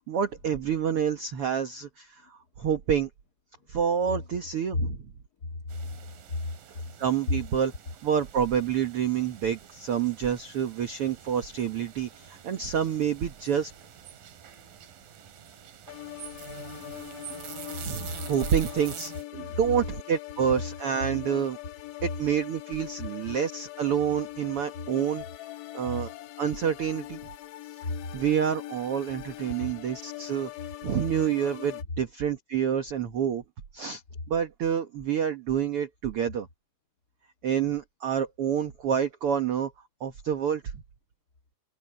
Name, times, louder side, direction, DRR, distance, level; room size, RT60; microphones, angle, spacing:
voice 1, 0.1-3.1 3.7-5.0 7.0-7.7 8.0-13.7 17.8-21.6 22.0-25.2 25.7-26.1 26.4-27.2 28.1-30.5 30.8-33.4 33.7-34.0 34.3-36.5 37.4-39.7 40.0-40.6, right 8 dB, 55° right, 1.7 m, -28 dB
voice 2, 5.4-6.0 6.3-6.9 17.7-17.8 19.5-19.6 27.8-28.0 29.6-29.7, left 3 dB, 35° left, 2.1 m, -33 dB
sound 1, 5.7-19.2, right 8 dB, 80° right, 3.7 m, -46 dB
sound 2, 15.9-31.8, left 16 dB, 75° left, 2.6 m, -42 dB
omnidirectional pair, 4.0 m